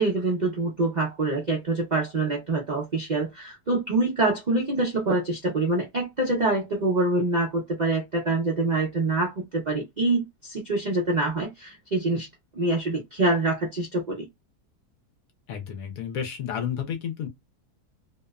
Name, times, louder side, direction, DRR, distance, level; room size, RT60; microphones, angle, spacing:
voice 1, 0.0-12.3 12.5-14.3, right 2 dB, 55° right, 0.4 m, -25 dB
voice 2, 15.5-17.3, left 8 dB, 70° left, 0.9 m, -31 dB
2.8 x 2.0 x 2.2 m
omnidirectional pair, 1.7 m